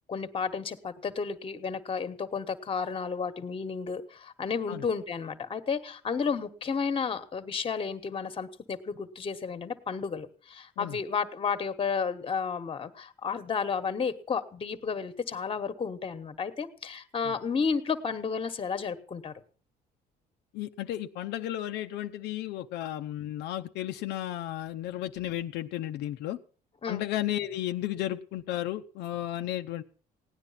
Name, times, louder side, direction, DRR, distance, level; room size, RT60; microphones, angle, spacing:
voice 1, 0.1-19.3 26.8-27.0, left 5 dB, 30° left, 11 dB, 1.4 m, -32 dB
voice 2, 20.5-26.4 26.9-29.8, left 13 dB, 80° left, 6 dB, 0.7 m, -33 dB
17.0 x 9.9 x 5.8 m, 0.42 s
cardioid pair, 110°, 17 cm